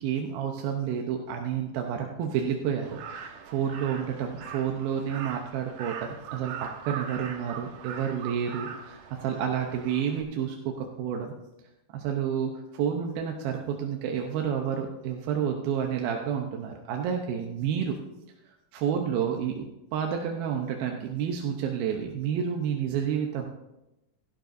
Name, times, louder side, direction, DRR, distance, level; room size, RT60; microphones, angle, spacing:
voice 1, 0.0-11.4 11.9-18.0 18.7-19.6 19.9-23.5, right 8 dB, 90° right, 2 dB, 2.7 m, -30 dB
Crow, 2.8-10.2, right 7 dB, 65° right, 1.9 m, -41 dB
16.0 x 12.0 x 2.6 m, 0.94 s
omnidirectional pair, 4.1 m